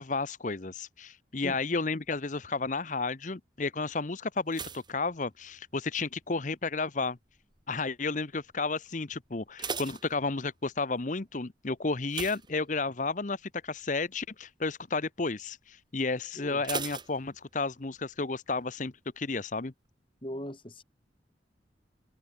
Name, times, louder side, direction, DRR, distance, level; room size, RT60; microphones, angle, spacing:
voice 1, 0.0-7.2 7.7-19.7, left 3 dB, 45° left, 0.9 m, -32 dB
sound 1, 4.5-6.0 6.2-6.7 7.3-7.7 8.0-8.1 8.5-8.6 9.2-10.8 12.1-13.2 13.6-13.8 14.2-14.3 16.6-17.8 18.1-18.2, right 5 dB, 25° right, 2.8 m, -39 dB
voice 2, 20.2-20.8, equal, 30° left, 7.0 m, -39 dB
head